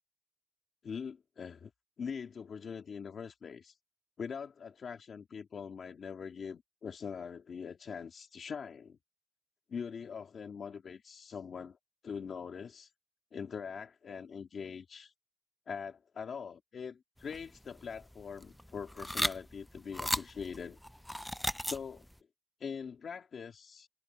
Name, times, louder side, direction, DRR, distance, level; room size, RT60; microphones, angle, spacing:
voice 1, 0.8-1.7 2.0-3.8 4.2-9.0 9.7-11.8 12.0-12.9 13.3-15.1 15.7-20.8 21.6-22.0 22.6-23.9, left 6 dB, 90° left, 2.1 m, -42 dB
sound 1, 17.2-22.1, equal, 5° left, 0.4 m, -37 dB
wide cardioid pair, 95°, 0 cm